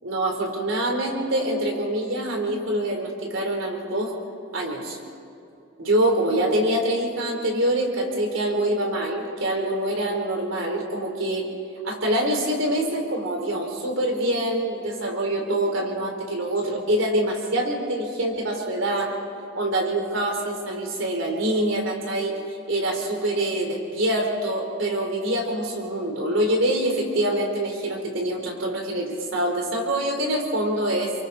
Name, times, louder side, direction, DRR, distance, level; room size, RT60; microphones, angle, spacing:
voice 1, 0.0-4.1 4.5-5.0 5.8-11.5 11.8-19.1 19.5-22.4 22.7-31.1, right 1 dB, 70° right, 2 dB, 3.9 m, -25 dB
29.5 x 23.5 x 4.2 m, 2.7 s
head